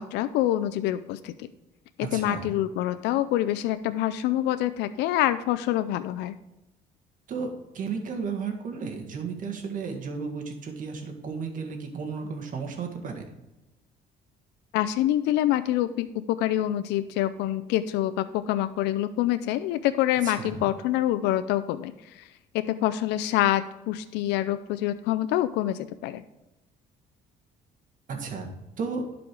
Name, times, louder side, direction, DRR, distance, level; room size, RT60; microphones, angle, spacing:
voice 1, 0.0-1.5 2.0-6.3 14.7-22.3 22.5-26.2, left 13 dB, 90° left, 12 dB, 0.5 m, -26 dB
voice 2, 2.0-2.5 7.3-13.2 20.2-20.7 28.1-29.0, right 5 dB, 50° right, 3 dB, 1.9 m, -34 dB
11.5 x 5.1 x 4.7 m, 0.98 s
cardioid pair, 110°, 17 cm